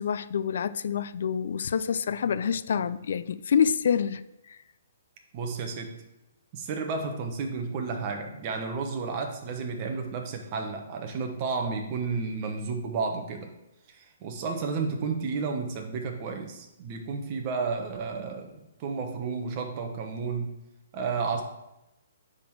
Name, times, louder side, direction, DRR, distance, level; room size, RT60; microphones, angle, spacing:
voice 1, 0.0-4.2 4.5-4.6, left 7 dB, 65° left, 0.4 m, -27 dB
voice 2, 5.3-5.9 6.5-13.5 13.9-20.5 20.9-21.4, right 4 dB, 30° right, 1.0 m, -32 dB
9.5 x 3.7 x 4.7 m
hypercardioid pair, 165°, 0 cm